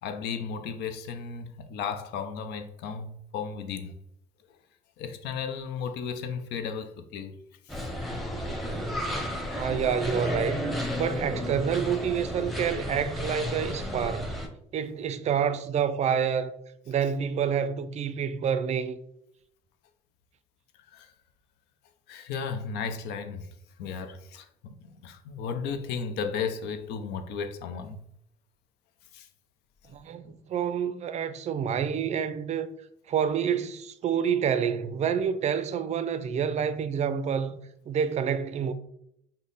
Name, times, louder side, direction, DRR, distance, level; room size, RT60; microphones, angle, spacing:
voice 1, 0.0-3.9 5.0-7.3 7.7-7.9 20.9-21.1 22.1-23.5 23.8-28.0 29.1-29.3 29.8-29.9 30.2-30.4, left 6 dB, 85° left, 0.6 m, -35 dB
sound 1, 7.7-14.5, equal, ahead, 0.7 m, -32 dB
voice 2, 9.5-10.7 11.0-14.3 14.7-16.5 16.9-19.0 29.9-32.7 33.1-37.6 37.9-38.7, right 7 dB, 40° right, 0.4 m, -28 dB
5.3 x 2.1 x 3.9 m
cardioid pair, 110°, 17 cm